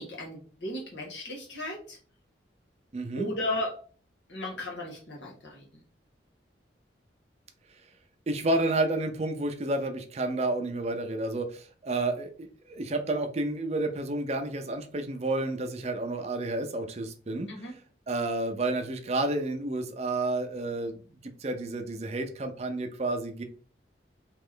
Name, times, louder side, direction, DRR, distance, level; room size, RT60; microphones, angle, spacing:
voice 1, 0.0-2.0 3.2-3.8 4.3-5.8 17.5-17.7, left 1 dB, 80° left, -2 dB, 1.6 m, -35 dB
voice 2, 2.9-3.3 8.3-17.5 18.1-23.4, right 2 dB, 35° right, 7 dB, 0.5 m, -30 dB
3.3 x 3.0 x 3.7 m, 0.42 s
head